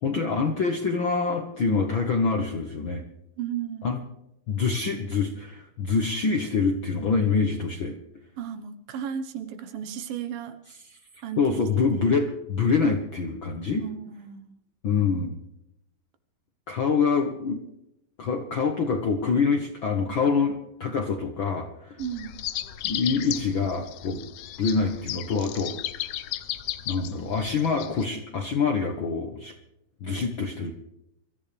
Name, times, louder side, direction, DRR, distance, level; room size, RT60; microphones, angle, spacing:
voice 1, 0.0-3.0 3.8-4.0 4.5-8.0 11.4-13.8 14.8-15.4 16.7-17.6 18.2-22.0 22.8-24.2 24.6-25.8 26.9-29.5 30.0-30.7, left 5 dB, 65° left, 4 dB, 1.2 m, -25 dB
voice 2, 3.4-3.9 8.4-10.6 11.2-11.7 11.9-12.1 13.8-14.6 22.0-22.4, right 9 dB, 85° right, 9 dB, 3.1 m, -34 dB
sound 1, 22.0-28.0, left 12 dB, 90° left, 1.4 m, -35 dB
24.0 x 14.0 x 3.4 m, 0.84 s
omnidirectional pair, 4.0 m